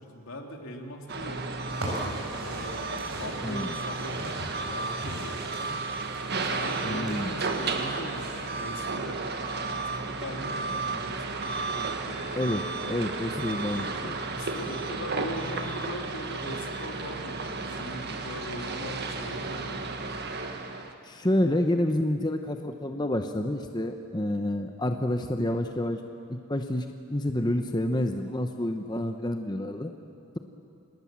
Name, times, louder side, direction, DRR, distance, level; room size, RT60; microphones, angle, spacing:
voice 1, 0.0-1.8 2.3-5.7 6.4-9.2 9.7-12.3 14.3-19.8, equal, 75° left, 2 dB, 2.7 m, -40 dB
sound 1, 1.1-20.9, right 3 dB, 50° right, 1.6 m, -33 dB
sound 2, 1.7-8.8, right 1 dB, 80° right, 7.1 m, -41 dB
voice 2, 6.8-7.3 12.4-12.6 12.9-14.2 21.0-26.0 26.3-29.9, left 1 dB, 20° left, 5 dB, 0.9 m, -28 dB
26.5 x 20.5 x 7.4 m, 2.5 s
head